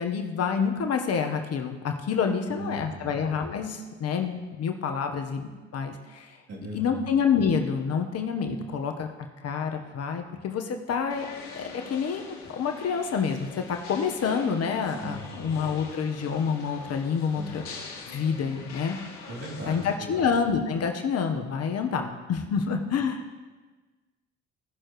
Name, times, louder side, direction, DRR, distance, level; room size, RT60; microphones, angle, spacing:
voice 1, 0.0-6.4 6.7-9.1 9.4-11.3 11.5-17.6 18.1-19.0 19.7-23.2, left 6 dB, 50° left, 5 dB, 1.2 m, -28 dB
voice 2, 2.5-3.2 6.5-7.0 15.0-15.6 17.3-17.6 19.3-20.3, right 1 dB, 50° right, -4 dB, 3.2 m, -38 dB
sound 1, 11.1-19.9, left 4 dB, 70° left, 2.0 m, -43 dB
17.0 x 6.4 x 3.2 m, 1.3 s
hypercardioid pair, 65°, 31 cm